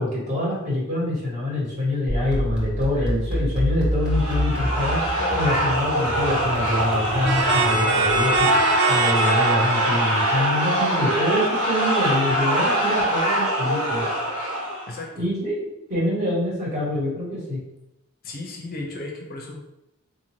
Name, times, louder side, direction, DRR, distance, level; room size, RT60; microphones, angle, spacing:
voice 1, 0.0-5.0 5.3-14.1 15.1-17.6, left 1 dB, 35° right, -6 dB, 1.4 m, -25 dB
sound 1, 2.1-8.4, equal, 5° right, 0.9 m, -28 dB
sound 2, 4.0-15.0, right 1 dB, 75° right, 1.3 m, -23 dB
sound 3, 7.2-11.8, right 4 dB, 50° right, 0.5 m, -25 dB
voice 2, 14.9-15.3 18.2-19.6, left 2 dB, 45° left, 0 dB, 0.5 m, -34 dB
3.9 x 2.6 x 3.1 m, 0.88 s
head